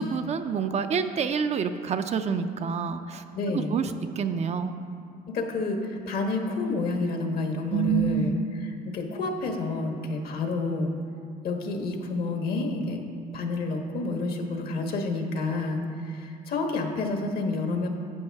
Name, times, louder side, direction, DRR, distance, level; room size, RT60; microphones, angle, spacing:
voice 1, 0.0-3.2 3.5-4.8 7.7-8.4, right 7 dB, 40° right, 8 dB, 0.5 m, -27 dB
voice 2, 3.3-3.8 5.3-8.3 8.9-10.9 11.4-13.0 13.3-17.9, left 3 dB, 65° left, 3 dB, 1.2 m, -29 dB
11.0 x 8.3 x 3.5 m, 2.4 s
cardioid pair, 110°, 17 cm